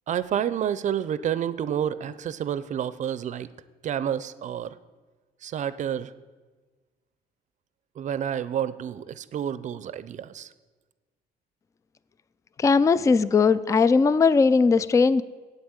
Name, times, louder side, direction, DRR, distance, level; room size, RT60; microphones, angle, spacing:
voice 1, 0.1-3.5 3.8-4.7 5.4-6.1 8.0-10.5, right 9 dB, 45° right, 15 dB, 0.5 m, -29 dB
voice 2, 12.6-15.2, left 4 dB, 20° left, 17 dB, 0.3 m, -19 dB
8.3 x 8.2 x 8.0 m, 1.4 s
cardioid pair, 110°, 17 cm